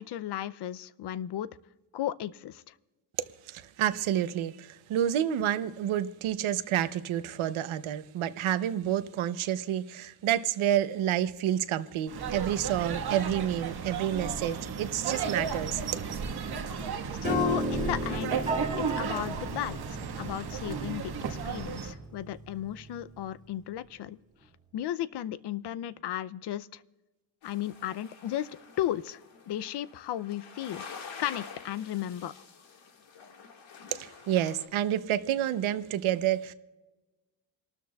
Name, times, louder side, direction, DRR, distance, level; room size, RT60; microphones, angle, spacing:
voice 1, 0.0-1.5 1.9-2.7 17.2-18.4 18.8-19.8 20.2-24.2 24.7-26.8 27.4-28.5 28.8-29.2 29.5-30.8 31.2-32.3, left 12 dB, 60° left, 0.5 m, -34 dB
voice 2, 3.5-15.8 33.9-36.5, right 11 dB, 90° right, 0.8 m, -29 dB
sound 1, 12.1-21.9, right 6 dB, 55° right, 1.4 m, -34 dB
Piano, 17.2-23.5, right 2 dB, 15° right, 1.5 m, -35 dB
sound 2, 27.4-34.6, left 5 dB, 75° left, 1.9 m, -48 dB
28.0 x 13.0 x 2.3 m
wide cardioid pair, 170°, 47 cm